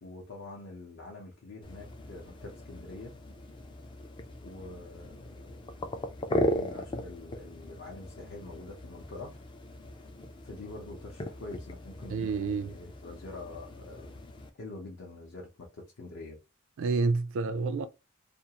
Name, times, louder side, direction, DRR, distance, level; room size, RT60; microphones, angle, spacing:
voice 1, 0.0-3.1 4.4-5.7 6.0-9.4 10.4-14.2 14.6-16.4, left 2 dB, 60° left, 0.7 m, -45 dB
sound 1, 1.6-14.5, left 1 dB, 20° left, 0.3 m, -38 dB
voice 2, 12.1-12.7 16.8-17.9, right 4 dB, 60° right, 0.3 m, -29 dB
2.5 x 2.3 x 2.8 m
head